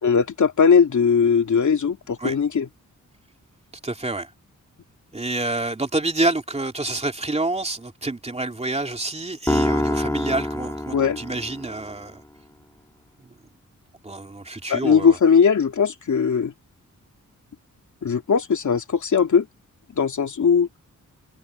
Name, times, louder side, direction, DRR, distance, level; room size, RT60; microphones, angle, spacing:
voice 1, 0.0-2.7 10.9-11.2 14.7-16.5 18.0-19.5 19.9-20.7, left 6 dB, 65° left, 3.0 m, -19 dB
voice 2, 3.8-4.3 5.1-12.2 13.2-13.3 14.0-15.2, right 2 dB, 20° right, 2.9 m, -28 dB
sound 1, 9.5-11.9, left 1 dB, 10° left, 3.1 m, -25 dB
wide cardioid pair, 140°, 31 cm